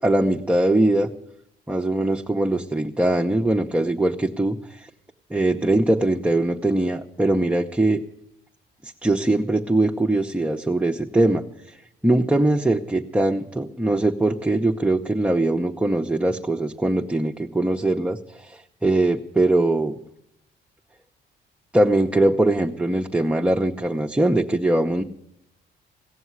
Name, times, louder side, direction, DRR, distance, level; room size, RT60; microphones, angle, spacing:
voice 1, 0.0-1.1 1.7-4.9 5.3-8.0 8.8-20.0 21.7-25.0, right 1 dB, 5° right, 2 dB, 0.8 m, -21 dB
17.0 x 7.0 x 9.5 m, 0.78 s
cardioid pair, 90°, 20 cm